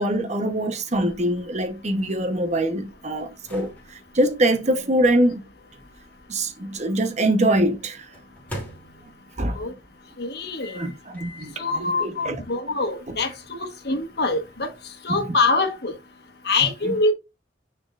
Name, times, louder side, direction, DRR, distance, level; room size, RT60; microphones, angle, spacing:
voice 1, 0.0-5.4 6.3-8.1 9.4-9.6 10.7-12.4 13.1-13.2 16.8-17.1, right 1 dB, 40° right, 1.0 m, -24 dB
sound 1, 1.1-7.0 8.1-9.5 10.6-11.6 12.1-12.2 13.2-14.8, equal, 10° left, 2.9 m, -44 dB
voice 2, 10.2-10.8 11.6-13.3 13.8-14.7 15.0-15.9 16.4-17.1, left 3 dB, 65° left, 1.3 m, -24 dB
9.6 x 4.4 x 2.5 m
head